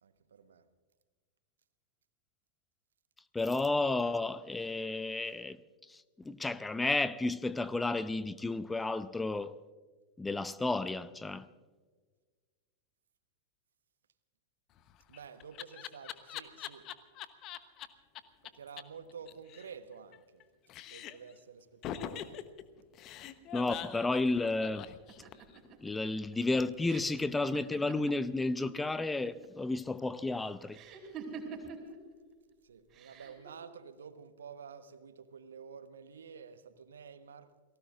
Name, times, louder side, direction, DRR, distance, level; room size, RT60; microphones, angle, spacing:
voice 1, 0.0-0.6 15.1-16.9 18.4-20.4 20.9-22.5 32.6-37.5, right 6 dB, 65° right, 1.2 m, -50 dB
voice 2, 3.3-5.6 5.9-9.6 10.2-11.5 23.5-24.9 25.8-30.8, left 2 dB, 10° left, 0.5 m, -32 dB
Laughter, 14.8-17.9 18.1-18.2 18.4-18.5 18.8-18.9 19.1-20.4 20.7-21.3 21.8-25.6, left 11 dB, 35° left, 1.0 m, -43 dB
sound 1, 25.1-28.7 29.0-29.6 30.7-32.0 32.9-33.5, right 5 dB, 30° right, 4.6 m, -46 dB
29.5 x 19.0 x 2.5 m
figure-of-eight pair, 90°, 0 cm